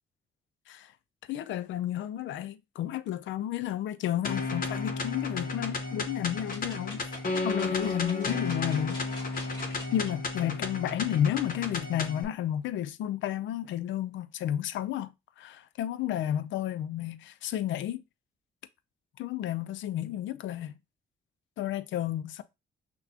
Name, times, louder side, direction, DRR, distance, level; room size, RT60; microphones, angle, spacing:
voice 1, 1.3-7.0 7.4-9.0 9.6-18.0 19.2-20.8 21.6-22.4, left 11 dB, 70° left, 0.4 m, -32 dB
sound 1, 4.2-12.2, left 3 dB, 45° left, 0.9 m, -33 dB
sound 2, 6.5-10.1 10.7-10.8, left 1 dB, 20° left, 1.7 m, -46 dB
5.9 x 2.3 x 2.8 m
cardioid pair, 90°, 20 cm